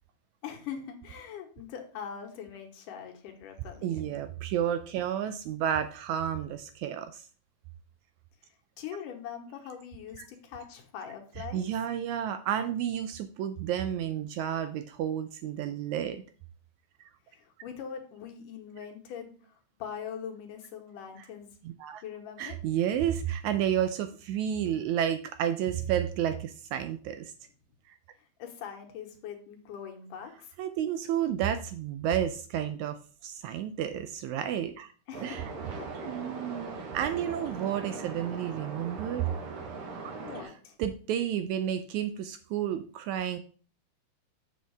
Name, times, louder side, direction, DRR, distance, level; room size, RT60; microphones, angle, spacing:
voice 1, 0.4-4.1 8.8-11.7 17.3-21.5 22.0-22.6 28.4-30.5 35.1-35.4 35.8-36.4 40.2-40.8, left 8 dB, 75° left, 3 dB, 2.8 m, -42 dB
voice 2, 3.8-7.3 11.5-16.2 21.6-22.0 22.4-27.3 27.9-28.0 30.6-34.9 35.2-35.4 36.0-39.3 40.0-40.1 40.8-43.4, right 10 dB, 80° right, 9 dB, 1.7 m, -31 dB
sound 1, 35.1-40.4, right 4 dB, 60° right, 1.6 m, -40 dB
7.5 x 7.1 x 3.4 m, 0.40 s
omnidirectional pair, 3.8 m